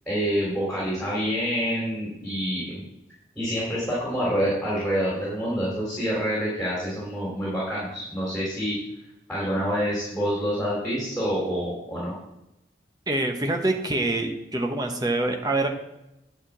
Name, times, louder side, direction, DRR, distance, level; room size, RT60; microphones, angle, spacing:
voice 1, 0.0-2.7 3.3-8.8 9.3-12.1, equal, 5° left, -7 dB, 3.2 m, -27 dB
voice 2, 13.1-15.7, right 2 dB, 20° right, 4 dB, 1.0 m, -25 dB
9.9 x 4.8 x 7.4 m, 0.89 s
head